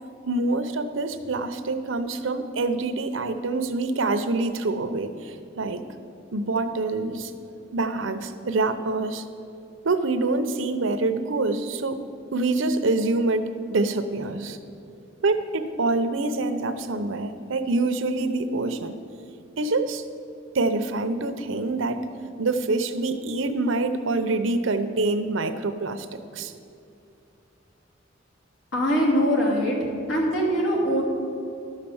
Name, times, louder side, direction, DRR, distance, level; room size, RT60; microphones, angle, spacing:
voice 1, 0.3-5.8 6.3-7.3 7.7-9.2 9.8-12.0 12.3-14.6 15.2-18.9 19.6-20.0 20.5-22.0 22.4-26.5, right 3 dB, 90° right, 9 dB, 0.7 m, -26 dB
voice 2, 28.7-29.8 30.1-31.0, equal, 85° left, -4 dB, 3.1 m, -22 dB
12.0 x 6.6 x 7.1 m, 2.7 s
head